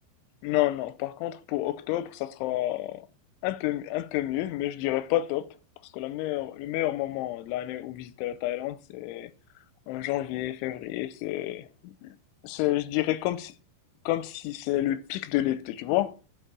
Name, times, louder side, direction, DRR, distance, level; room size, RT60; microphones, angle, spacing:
voice 1, 0.4-3.1 3.4-5.6 5.9-9.3 9.9-12.2 12.4-13.5 14.1-16.2, left 15 dB, 85° left, 3.1 m, -29 dB
12.0 x 5.0 x 7.5 m
omnidirectional pair, 5.4 m